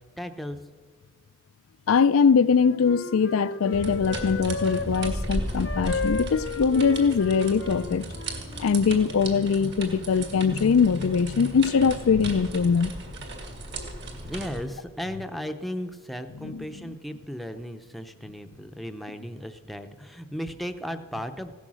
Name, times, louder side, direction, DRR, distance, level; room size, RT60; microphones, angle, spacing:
voice 1, 0.2-0.6 14.2-21.5, equal, ahead, 0.7 m, -35 dB
voice 2, 1.9-8.1 8.6-12.9 16.4-16.9, left 6 dB, 80° left, 0.4 m, -22 dB
Wind instrument woodwind instrument, 2.0-5.1 5.6-8.8, left 2 dB, 60° left, 0.8 m, -34 dB
sound 1, 3.7-14.6, right 1 dB, 55° right, 2.3 m, -35 dB
16.5 x 12.5 x 6.3 m
head